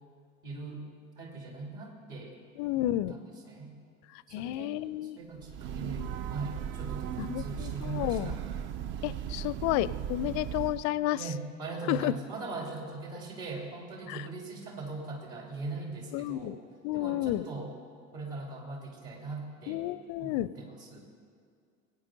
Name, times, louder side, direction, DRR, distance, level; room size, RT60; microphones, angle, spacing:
voice 1, 0.4-0.8 1.2-2.4 2.8-3.7 4.3-8.4 11.1-16.6 16.9-17.8 18.1-19.8 20.2-21.0, right 3 dB, 55° right, 0 dB, 3.1 m, -40 dB
voice 2, 2.6-3.1 4.3-5.2 7.2-8.3 9.0-11.2 11.9-12.1 14.1-14.2 16.1-16.6 16.8-17.5 19.7-20.5, left 15 dB, 45° left, 18 dB, 0.4 m, -31 dB
Breathing / Train, 5.4-10.9, right 9 dB, 30° right, 0.4 m, -37 dB
19.0 x 9.0 x 3.9 m, 2.3 s
figure-of-eight pair, 65°, 41 cm